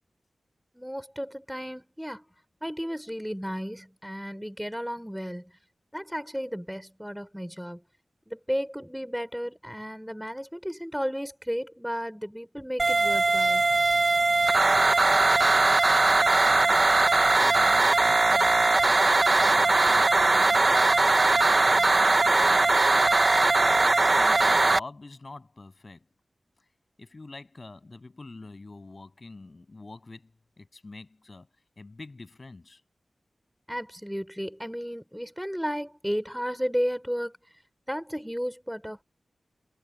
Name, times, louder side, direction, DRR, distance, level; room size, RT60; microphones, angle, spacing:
voice 1, 0.7-2.2 2.6-5.5 5.9-7.8 8.3-13.6 33.7-37.4 37.9-39.0, equal, ahead, 4.6 m, -33 dB
sound 1, 12.8-24.8, right 2 dB, 45° right, 1.1 m, -20 dB
voice 2, 16.0-18.7 19.4-21.4 21.7-22.8 23.8-26.1 27.0-31.5 31.8-32.8, left 3 dB, 45° left, 7.8 m, -46 dB
wide cardioid pair, 70°, 0 cm